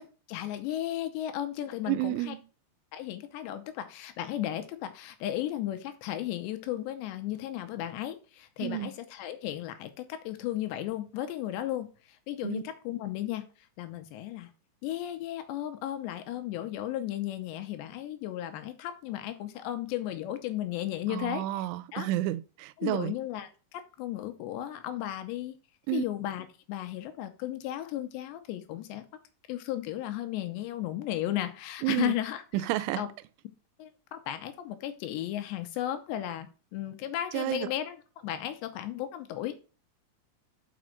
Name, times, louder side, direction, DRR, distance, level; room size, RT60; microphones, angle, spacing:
voice 1, 0.3-2.4 2.9-13.5 13.8-14.5 14.8-21.7 21.9-22.1 22.8-25.6 25.9-29.1 29.5-32.4 33.0-33.1 33.8-38.0 38.2-39.5, left 12 dB, 75° left, 2.9 m, -35 dB
voice 2, 1.9-2.4 8.6-8.9 12.4-12.6 21.1-23.1 25.9-26.0 31.8-32.1 32.5-33.0 37.3-37.7, right 16 dB, 90° right, 3.0 m, -30 dB
6.1 x 5.5 x 6.3 m
omnidirectional pair, 5.3 m